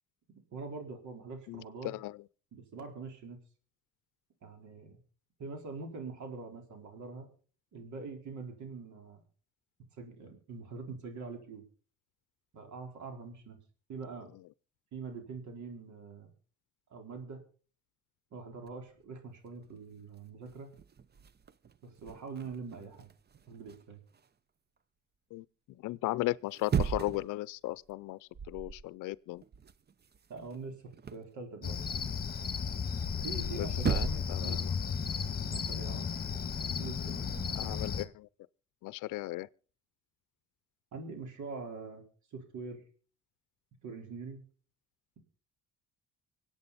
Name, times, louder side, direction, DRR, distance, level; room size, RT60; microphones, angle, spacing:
voice 1, 0.5-2.0 2.5-3.4 4.4-5.0 5.4-7.3 7.7-9.2 10.0-11.6 12.5-13.6 13.9-14.3 14.9-16.3 16.9-17.4 18.3-20.7 21.8-23.1 23.5-24.0 30.3-31.8 33.2-34.7 35.5-36.1 36.8-37.3 40.9-42.0 42.3-42.8 43.8-44.4, right 4 dB, 75° right, 4.2 m, -44 dB
voice 2, 1.5-2.2 25.3-29.4 33.5-34.7 37.6-38.3 38.8-39.5, left 18 dB, 90° left, 0.6 m, -37 dB
sound 1, 18.7-19.0 19.6-19.7 20.0-24.3 26.4-27.4 27.7-28.0 28.3-28.9 29.1-31.3 33.3-33.4 33.7-34.5 34.7-37.6, right 7 dB, 35° right, 0.7 m, -38 dB
Cricket, 31.6-38.1, left 6 dB, 30° left, 1.6 m, -34 dB
25.5 x 8.6 x 4.1 m
cardioid pair, 90°, 30 cm